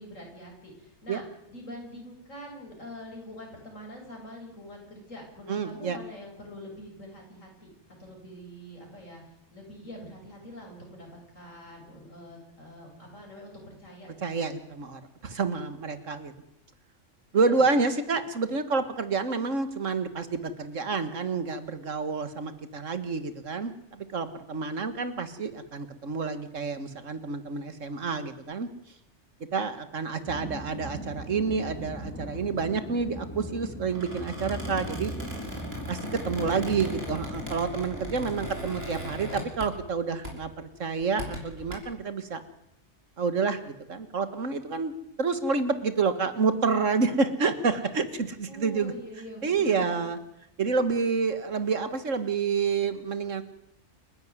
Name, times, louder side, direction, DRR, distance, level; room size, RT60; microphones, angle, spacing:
voice 1, 0.0-7.7 8.0-9.2 9.5-14.4 17.3-17.7 36.3-37.1 48.5-49.9, equal, 85° left, 0 dB, 7.6 m, -44 dB
voice 2, 5.5-6.0 14.2-16.3 17.3-28.7 29.5-35.1 35.9-42.4 43.2-48.9 49.4-50.2 50.6-53.4, right 4 dB, 75° right, 11 dB, 2.0 m, -29 dB
sound 1, 30.3-37.5, equal, 10° left, 3.3 m, -38 dB
Squeak, 33.9-40.0 40.2-40.5 41.0-41.7, equal, 50° right, 5.1 m, -39 dB
28.5 x 11.0 x 9.6 m, 0.81 s
omnidirectional pair, 1.3 m